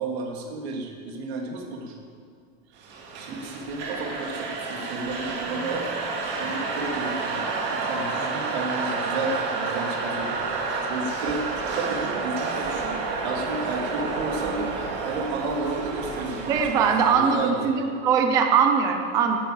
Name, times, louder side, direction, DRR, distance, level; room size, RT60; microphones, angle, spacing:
voice 1, 0.0-2.0 2.8-5.9 6.4-7.4 7.7-10.3 10.9-11.4 11.7-17.7, right 3 dB, 70° right, 1 dB, 2.7 m, -32 dB
sound 1, 2.8-17.1, right 4 dB, 30° right, 2.1 m, -30 dB
voice 2, 16.5-19.4, right 6 dB, 10° right, 4 dB, 0.3 m, -21 dB
11.0 x 10.0 x 7.8 m, 2.2 s
supercardioid pair, 170°, 33 cm